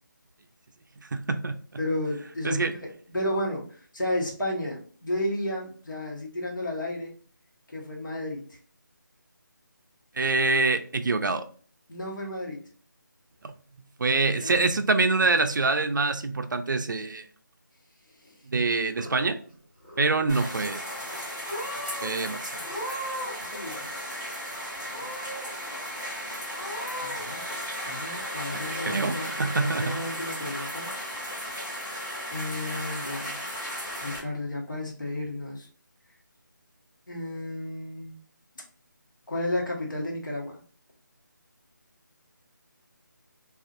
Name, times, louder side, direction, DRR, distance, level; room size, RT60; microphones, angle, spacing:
voice 1, 1.1-1.6 2.4-2.7 10.2-11.4 14.0-17.2 18.5-19.4 20.0-20.8 22.0-22.5 28.5-30.0, right 3 dB, 70° right, 0.4 m, -25 dB
voice 2, 1.8-7.1 7.7-8.6 11.9-12.6 14.3-14.6 18.2-18.3 23.4-23.9 27.0-27.4 27.9-30.9 32.3-33.4 34.0-35.7 37.1-38.2 39.3-40.6, left 1 dB, 70° left, 1.1 m, -33 dB
Purr / Meow, 18.7-19.5 19.8-20.4 21.1-21.2 21.5-22.1 22.6-23.5 23.7-24.5 24.9-25.5 25.9-26.0 26.5-27.2, equal, 10° right, 1.4 m, -38 dB
sound 1, 20.3-34.2, equal, 10° left, 0.4 m, -35 dB
2.5 x 2.3 x 2.5 m
figure-of-eight pair, 165°, 11 cm